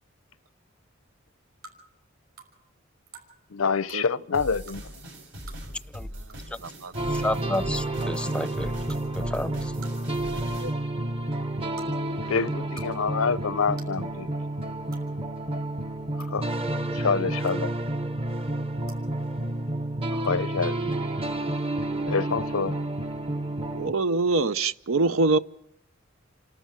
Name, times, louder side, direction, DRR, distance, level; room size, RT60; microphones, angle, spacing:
sound 1, 1.6-1.8 2.4-2.5 3.1-3.3 3.8-4.0 4.7-4.8 5.4-5.6 6.3-6.4 6.6-6.7 7.1-7.4 8.0-8.1 8.9-9.0 9.8-10.1 10.4-10.7 11.7-11.9 12.5-12.9 13.1-13.2 13.8-14.0 14.9-15.0 15.9-16.3 17.4-17.8 18.8-19.0 20.2-20.3, right 5 dB, 50° right, 6.1 m, -48 dB
voice 1, 3.5-4.8 12.3-14.3 16.3-16.5 16.9-17.7 20.1-21.0 22.1-22.7, left 5 dB, 90° left, 0.7 m, -27 dB
sound 2, 4.3-10.7, equal, 65° right, 7.2 m, -40 dB
voice 2, 6.6-6.9 10.1-10.7 23.7-25.4, right 3 dB, 80° right, 0.8 m, -25 dB
sound 3, 6.9-23.9, right 1 dB, 30° right, 1.1 m, -30 dB
voice 3, 7.1-8.7 9.1-9.7, left 1 dB, 5° left, 0.7 m, -31 dB
28.5 x 13.0 x 7.4 m
head